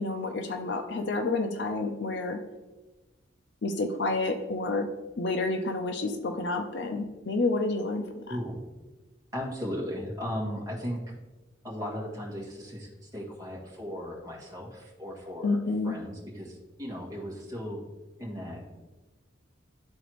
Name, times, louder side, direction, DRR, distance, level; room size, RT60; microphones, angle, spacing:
voice 1, 0.0-2.4 3.6-4.9 5.2-8.0 15.4-15.9, left 3 dB, 60° left, 6 dB, 0.6 m, -29 dB
voice 2, 8.3-8.6 9.3-11.0 11.6-15.6 15.8-17.8 18.2-18.8, equal, 20° right, -4 dB, 1.8 m, -36 dB
12.0 x 4.0 x 3.1 m, 1.1 s
head